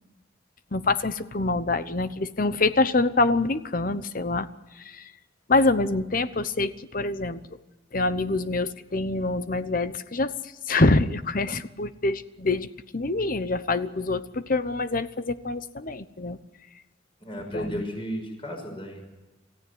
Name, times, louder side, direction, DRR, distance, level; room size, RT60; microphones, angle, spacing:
voice 1, 0.7-4.5 4.8-5.1 5.5-7.4 7.9-10.3 10.7-12.7 12.9-16.4 17.5-17.8, left 2 dB, 45° left, 13 dB, 0.9 m, -25 dB
voice 2, 17.2-19.0, equal, 30° left, 3 dB, 5.9 m, -34 dB
27.5 x 15.5 x 9.6 m, 1.1 s
head